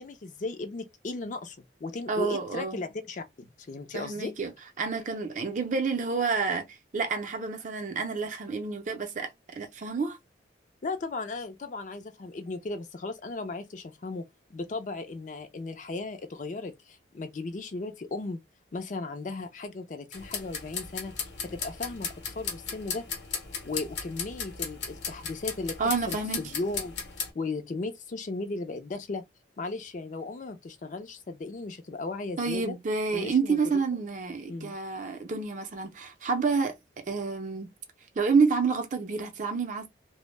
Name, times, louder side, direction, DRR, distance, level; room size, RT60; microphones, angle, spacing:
voice 1, 0.0-4.3 10.8-14.3 14.5-18.4 18.7-21.1 21.4-23.0 23.6-27.0 27.3-29.2 29.6-32.8 33.1-33.6 34.5-34.7, left 3 dB, 45° left, 0.4 m, -36 dB
voice 2, 2.1-2.8 3.9-4.5 4.8-10.2 25.8-26.4 32.4-36.7 37.1-37.7 38.2-39.9, right 4 dB, 40° right, 0.5 m, -29 dB
sound 1, 20.1-27.3, left 6 dB, 70° left, 0.7 m, -36 dB
2.1 x 2.0 x 3.1 m
head